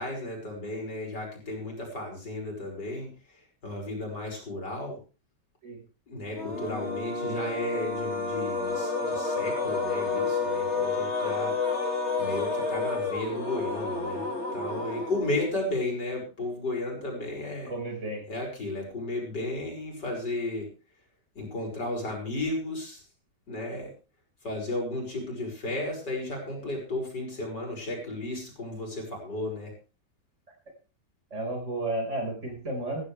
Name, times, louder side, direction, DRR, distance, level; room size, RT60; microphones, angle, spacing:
voice 1, 0.0-3.1 3.6-5.0 6.1-11.5 12.2-14.3 14.5-17.7 18.3-20.7 21.3-23.0 23.5-23.9 24.4-29.7, left 2 dB, 85° left, 0 dB, 6.3 m, -34 dB
sound 1, 6.3-15.7, left 3 dB, 40° left, 3.0 m, -30 dB
voice 2, 17.7-18.2 31.3-33.0, right 2 dB, 45° right, 3 dB, 5.5 m, -32 dB
15.5 x 15.0 x 3.4 m, 0.33 s
omnidirectional pair, 1.8 m